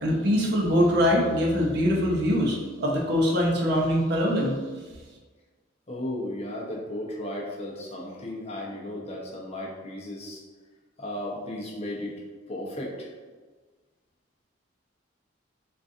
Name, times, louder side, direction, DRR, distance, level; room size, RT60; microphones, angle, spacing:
voice 1, 0.0-4.6, equal, 60° right, -1 dB, 0.6 m, -23 dB
voice 2, 5.9-10.4 11.0-12.1 12.5-13.1, left 1 dB, 35° left, -3 dB, 0.6 m, -35 dB
3.8 x 2.4 x 2.6 m, 1.4 s
head